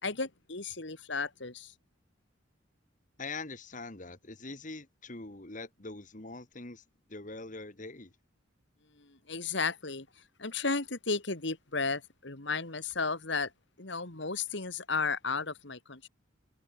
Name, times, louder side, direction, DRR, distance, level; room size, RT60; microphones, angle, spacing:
voice 1, 0.0-1.7 9.0-10.1 10.4-13.5 13.8-16.1, left 4 dB, 65° left, 2.2 m, -34 dB
voice 2, 3.2-6.8 7.1-8.1, left 3 dB, 40° left, 1.9 m, -43 dB
head